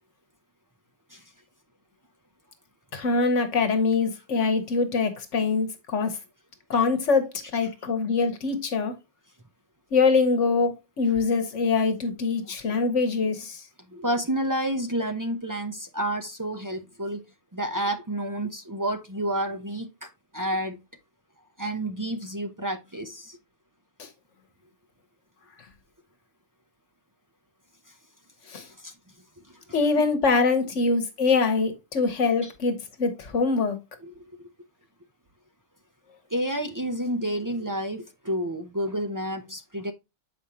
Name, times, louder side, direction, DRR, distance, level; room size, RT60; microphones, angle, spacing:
voice 1, 2.9-6.2 6.7-8.9 9.9-13.6 24.0-24.1 28.5-28.7 29.7-33.8, left 4 dB, 70° left, 1.4 m, -24 dB
voice 2, 13.9-17.3 17.5-20.8 21.6-23.4 28.8-28.9 29.5-29.6 32.4-32.5 34.0-34.2 36.3-39.9, right 1 dB, 25° right, 0.4 m, -30 dB
7.8 x 5.1 x 2.8 m
omnidirectional pair, 1.3 m